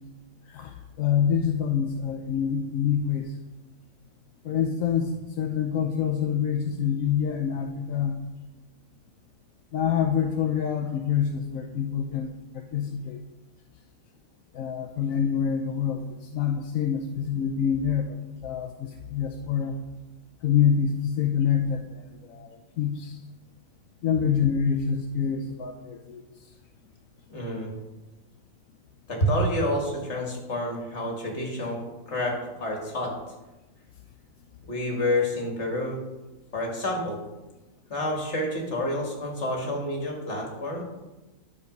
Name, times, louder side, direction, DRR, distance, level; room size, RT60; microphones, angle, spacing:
voice 1, 0.5-3.3 4.4-8.2 9.7-13.2 14.5-19.8 20.4-23.2 24.0-26.2, left 7 dB, 85° left, 4 dB, 1.1 m, -26 dB
voice 2, 27.3-27.7 29.1-31.8 32.1-33.1 34.7-36.0 36.5-37.2 37.9-40.8, left 1 dB, 55° left, 0 dB, 2.4 m, -28 dB
9.7 x 6.8 x 5.2 m, 1.1 s
omnidirectional pair, 1.4 m